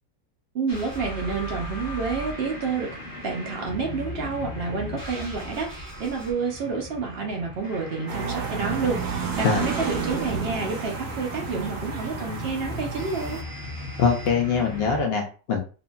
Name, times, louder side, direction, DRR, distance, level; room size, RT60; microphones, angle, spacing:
voice 1, 0.5-2.9 3.2-13.4, right 4 dB, 60° right, 1 dB, 0.6 m, -29 dB
sound 1, 0.7-15.0, left 1 dB, 45° left, 1.0 m, -37 dB
sound 2, 8.1-13.4, right 5 dB, 80° right, 1.0 m, -31 dB
voice 2, 14.0-15.6, left 5 dB, 65° left, 2 dB, 0.6 m, -23 dB
2.8 x 2.5 x 2.2 m, 0.37 s
omnidirectional pair, 1.6 m